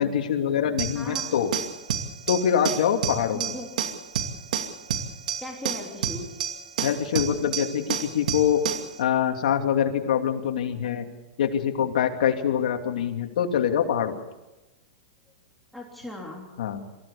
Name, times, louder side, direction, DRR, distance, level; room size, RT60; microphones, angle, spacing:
voice 1, 0.0-1.5 2.3-3.5 6.8-8.6 9.0-11.0 11.4-14.2 16.6-16.8, left 9 dB, 75° left, 4 dB, 2.9 m, -24 dB
sound 1, 0.8-8.9, right 8 dB, 80° right, 2.6 m, -30 dB
voice 2, 0.9-1.4 3.3-3.7 5.4-6.4 15.7-16.5, left 1 dB, ahead, -2 dB, 3.4 m, -38 dB
25.5 x 15.5 x 7.0 m, 1.0 s
hypercardioid pair, 145°, 4 cm